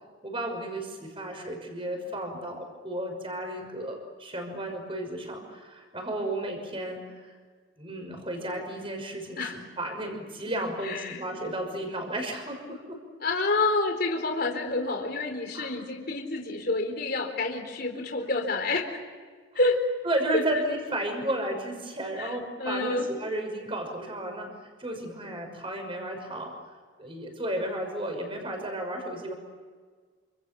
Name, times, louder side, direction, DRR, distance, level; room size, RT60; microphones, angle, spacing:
voice 1, 0.2-7.3 7.8-13.0 15.5-15.7 20.0-26.5 27.0-29.3, right 1 dB, 25° right, 3 dB, 6.1 m, -33 dB
voice 2, 10.8-11.2 13.2-19.0 19.5-19.8 20.3-20.4 22.2-23.1, left 3 dB, 50° left, 2 dB, 4.2 m, -28 dB
28.5 x 27.5 x 7.2 m, 1.5 s
head